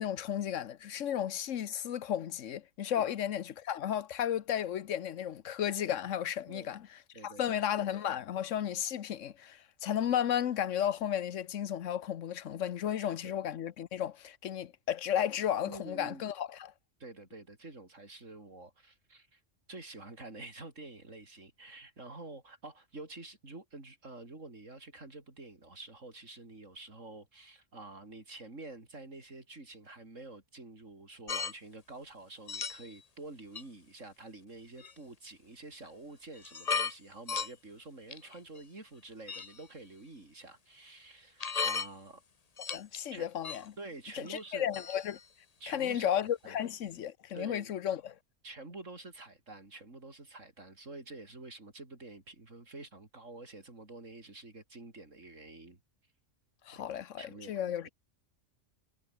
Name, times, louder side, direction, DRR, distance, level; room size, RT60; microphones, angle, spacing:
voice 1, 0.0-6.9 7.2-16.7 42.7-43.7 44.1-45.2 45.7-48.1 56.7-57.9, left 10 dB, 80° left, 1.2 m, -34 dB
voice 2, 7.1-7.5 12.9-13.3 15.6-16.3 17.0-19.4 19.7-42.2 43.1-43.3 43.8-44.7 45.6-46.6 47.3-47.7 48.4-55.8 56.7-57.9, right 2 dB, 85° right, 4.8 m, -48 dB
sound 1, 31.3-31.5 32.5-33.0 33.6-33.7 34.8-34.9 35.8-35.9 36.3-36.9 37.3-37.5 38.1-38.6 39.3-39.6 41.4-41.9 42.6-43.0 43.4-43.7 44.3-44.4 44.7-45.2, left 5 dB, 35° left, 0.9 m, -35 dB
omnidirectional pair, 1.3 m